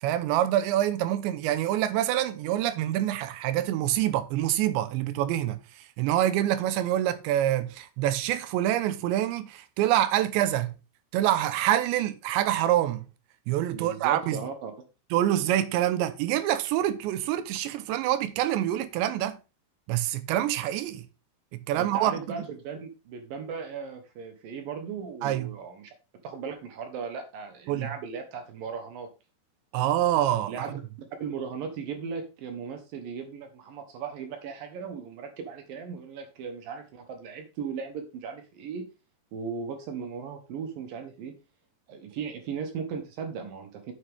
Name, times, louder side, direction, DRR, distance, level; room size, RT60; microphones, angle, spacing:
voice 1, 0.0-10.8 11.1-13.1 13.5-14.4 15.1-19.4 19.9-21.1 21.7-22.4 25.2-25.5 27.7-27.9 29.7-30.8, right 12 dB, 85° right, 3.1 m, -26 dB
voice 2, 13.7-14.7 21.7-25.9 26.2-29.1 30.5-30.8 31.2-38.9 39.3-41.3 41.9-43.9, right 6 dB, 65° right, 2.4 m, -37 dB
9.3 x 7.4 x 3.5 m
omnidirectional pair, 5.1 m